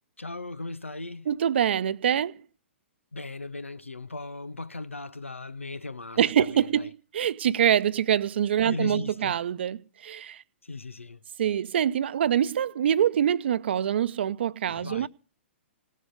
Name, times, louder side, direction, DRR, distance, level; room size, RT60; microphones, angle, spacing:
voice 1, 0.2-1.3 3.1-6.2 6.5-6.9 8.7-9.3 10.6-11.2 14.8-15.1, left 3 dB, 85° left, 0.9 m, -37 dB
voice 2, 1.3-2.4 6.2-10.4 11.4-15.1, right 9 dB, 60° right, 0.8 m, -25 dB
18.0 x 7.5 x 9.4 m
figure-of-eight pair, 115°, 7 cm